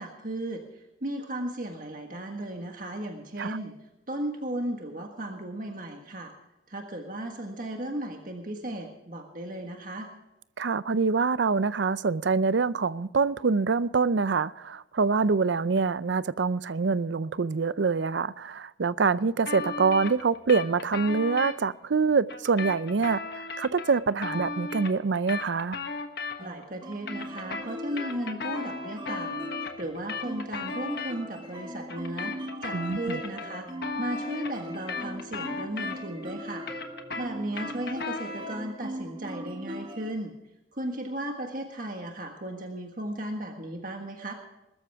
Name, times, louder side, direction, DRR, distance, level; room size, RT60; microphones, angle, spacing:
voice 1, 0.0-3.7 4.1-6.3 6.7-10.1 26.4-29.5 29.8-32.3 32.6-33.7 34.0-36.6 37.2-40.3 40.7-44.3, right 1 dB, 45° right, 1.6 m, -35 dB
voice 2, 10.6-25.8 32.7-33.2, right 4 dB, 70° right, 0.5 m, -25 dB
sound 1, 19.4-21.5 22.3-26.6 26.9-31.1 31.9-36.2 36.5-38.6, left 4 dB, 55° left, 1.3 m, -36 dB
sound 2, 26.4-40.1, equal, 25° right, 1.8 m, -40 dB
21.0 x 13.5 x 3.5 m
head